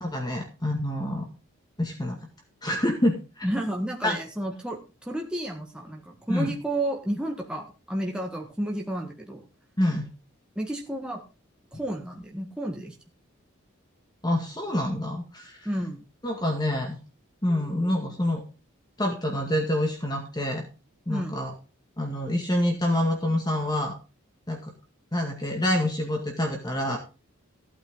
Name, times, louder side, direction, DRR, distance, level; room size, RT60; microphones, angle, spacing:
voice 1, 0.0-1.3 1.8-2.2 2.6-3.5 4.0-4.2 6.3-6.5 9.8-10.1 14.2-15.7 16.2-17.0 17.4-18.4 19.0-20.7 21.1-21.5 22.0-24.0 24.5-24.6 25.1-27.0, left 1 dB, 20° left, 2 dB, 2.1 m, -27 dB
voice 2, 3.4-9.4 10.6-11.2 11.7-12.9 15.7-16.0 21.1-21.3, right 1 dB, 5° right, 0 dB, 1.8 m, -31 dB
15.5 x 8.9 x 3.9 m, 0.31 s
head